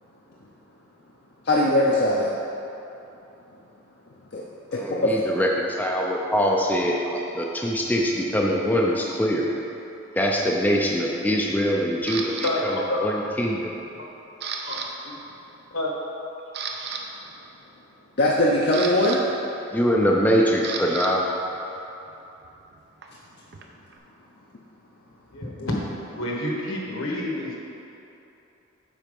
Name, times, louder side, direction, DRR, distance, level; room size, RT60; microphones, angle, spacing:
voice 1, 1.4-2.4 4.3-4.4 4.9-5.0 18.2-19.2, left 1 dB, 50° left, -4 dB, 0.6 m, -20 dB
voice 2, 4.8-9.4 10.2-12.7 13.0-13.8 19.7-21.2, equal, 10° left, -2 dB, 0.4 m, -23 dB
Camera, 12.1-12.5 13.1-13.5 13.8-14.9 15.1-15.4 15.9-16.0 16.4-17.0 18.2-21.1 21.4-24.0, right 5 dB, 50° right, 0.6 m, -35 dB
voice 3, 12.4-13.1 14.0-14.1 14.7-15.1 15.7-15.9 21.7-21.8 25.3-25.8 26.1-27.6, left 1 dB, 75° left, -3 dB, 1.4 m, -29 dB
7.4 x 4.8 x 5.3 m, 2.9 s
head